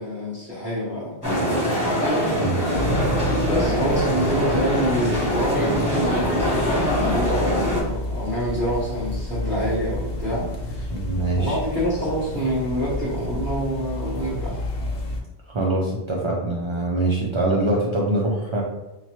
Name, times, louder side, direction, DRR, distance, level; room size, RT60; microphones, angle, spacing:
voice 1, 0.0-1.6 3.4-10.9 11.4-14.6, equal, 10° right, -8 dB, 0.8 m, -26 dB
sound 1, 1.2-7.8, equal, 15° left, 1.0 m, -23 dB
sound 2, 2.7-15.2, left 1 dB, 65° left, 0.8 m, -30 dB
voice 2, 10.9-11.6 15.5-18.6, right 2 dB, 50° right, -3 dB, 0.3 m, -23 dB
5.6 x 2.1 x 3.0 m, 1.0 s
omnidirectional pair, 1.1 m